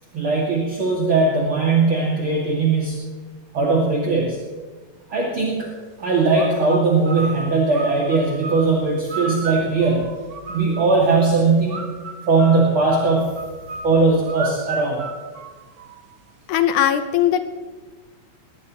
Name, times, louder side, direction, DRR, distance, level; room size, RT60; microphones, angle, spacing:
voice 1, 0.1-3.0 3.5-4.4 5.1-5.7 6.0-11.9 12.3-13.4 13.8-15.0, right 3 dB, 45° right, -4 dB, 3.0 m, -19 dB
sound 1, 6.3-11.0 11.7-16.2, right 4 dB, 80° right, 0.8 m, -34 dB
voice 2, 16.5-17.5, left 10 dB, 85° left, 9 dB, 2.5 m, -19 dB
20.5 x 20.0 x 3.1 m, 1.3 s
omnidirectional pair, 3.4 m